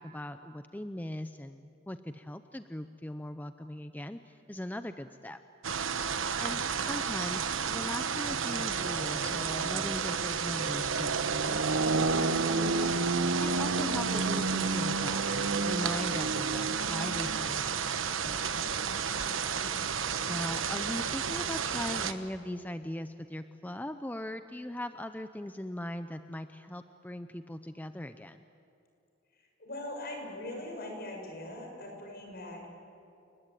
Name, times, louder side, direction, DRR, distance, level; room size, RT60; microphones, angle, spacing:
voice 1, 0.0-5.4 6.4-18.6 20.3-28.4, left 1 dB, 10° left, 9 dB, 0.6 m, -40 dB
sound 1, 5.6-22.1, right 5 dB, 80° right, 1.2 m, -30 dB
voice 2, 6.1-6.5 19.0-19.7 29.3-32.8, left 1 dB, 55° left, 1 dB, 6.7 m, -42 dB
30.0 x 20.5 x 9.2 m, 2.7 s
head